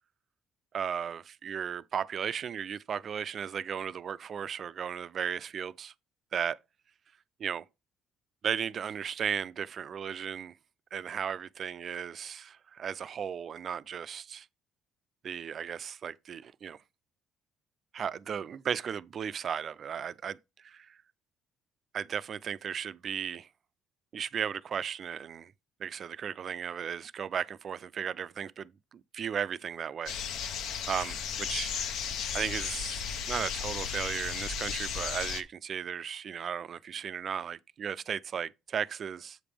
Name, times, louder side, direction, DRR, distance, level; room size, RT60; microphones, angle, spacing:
voice 1, 0.7-5.9 6.3-6.6 7.4-7.6 8.4-10.5 10.9-14.5 15.2-16.8 17.9-21.0 21.9-23.5 24.1-25.5 25.8-30.6 30.9-31.7 32.3-39.4, right 7 dB, 45° right, 0.3 m, -35 dB
sound 1, 30.1-35.4, left 7 dB, 70° left, 0.7 m, -35 dB
7.7 x 5.0 x 3.4 m
cardioid pair, 120°, 0 cm